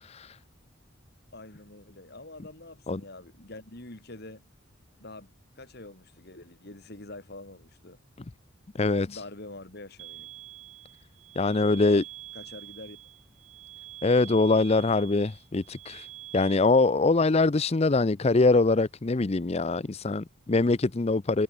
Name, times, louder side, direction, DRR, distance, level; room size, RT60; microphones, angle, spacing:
voice 1, 0.0-0.4 2.9-3.0 8.8-9.2 11.4-12.0 14.0-16.1 16.3-21.4, left 3 dB, 30° left, 0.5 m, -23 dB
voice 2, 1.3-4.4 5.0-8.0 9.1-10.3 11.5-12.1 12.3-13.1, left 2 dB, 50° left, 2.8 m, -45 dB
sound 1, 10.0-16.6, right 15 dB, 85° right, 6.4 m, -46 dB
head